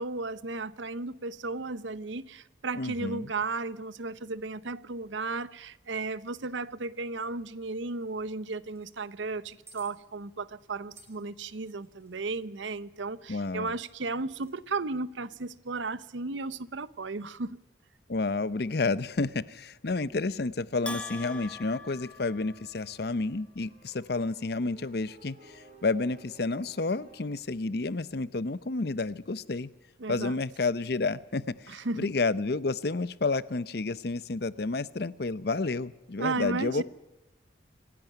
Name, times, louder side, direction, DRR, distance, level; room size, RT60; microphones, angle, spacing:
voice 1, 0.0-17.6 30.0-30.4 31.7-32.1 36.2-36.8, right 3 dB, 80° right, 0.8 m, -34 dB
voice 2, 2.8-3.3 13.3-13.7 18.1-29.7 30.1-36.8, left 3 dB, 55° left, 0.7 m, -30 dB
sound 1, 8.6-9.0 9.7-9.9 11.0-12.2 14.3-14.6, right 3 dB, 15° right, 3.1 m, -56 dB
Bell, 20.9-23.0, left 2 dB, 5° left, 1.1 m, -41 dB
sound 2, 23.6-27.6, right 2 dB, 35° right, 3.8 m, -56 dB
26.5 x 11.0 x 9.3 m
head